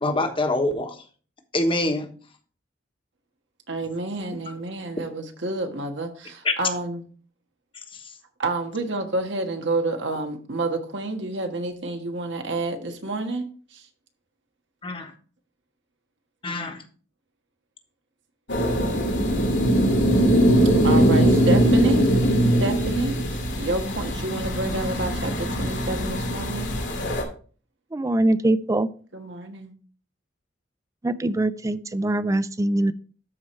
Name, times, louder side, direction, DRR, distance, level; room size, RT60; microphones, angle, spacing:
voice 1, 0.0-1.0 1.5-2.1 6.4-6.5 7.9-8.1 14.8-15.1 16.4-16.8, left 2 dB, 30° left, 6 dB, 1.1 m, -25 dB
voice 2, 3.7-7.0 8.4-13.4 13.7-13.8 20.8-22.0 22.6-26.7 29.1-29.7, right 2 dB, 85° right, 4 dB, 1.5 m, -29 dB
sound 1, 18.5-27.2, equal, 85° left, 2.3 m, -21 dB
voice 3, 27.9-28.9 31.0-32.9, right 1 dB, 15° right, 15 dB, 0.4 m, -23 dB
13.0 x 4.7 x 3.2 m, 0.41 s
head